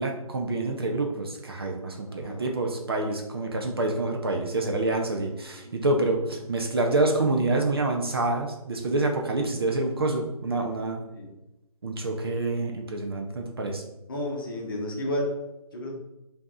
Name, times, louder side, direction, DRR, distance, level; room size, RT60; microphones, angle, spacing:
voice 1, 0.0-11.0 11.8-13.8, right 2 dB, 40° right, 2 dB, 0.4 m, -27 dB
voice 2, 2.1-2.4 5.6-5.9 11.1-11.3 14.1-15.3 15.7-15.9, left 1 dB, 35° left, -1 dB, 0.8 m, -32 dB
4.4 x 2.7 x 2.3 m, 0.94 s
figure-of-eight pair, 145°, 19 cm